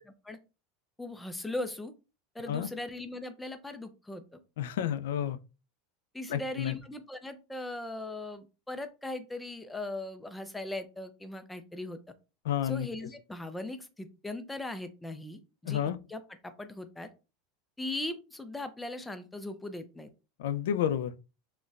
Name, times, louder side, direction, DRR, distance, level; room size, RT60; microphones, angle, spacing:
voice 1, 1.0-1.9 2.3-4.4 6.1-12.0 12.6-17.1 17.8-20.1, left 2 dB, 5° left, 0.4 m, -39 dB
voice 2, 4.6-5.4 6.3-6.7 12.5-12.9 15.7-16.0 20.4-21.1, left 10 dB, 85° left, 0.3 m, -30 dB
3.8 x 2.1 x 2.4 m
supercardioid pair, 155°, 0 cm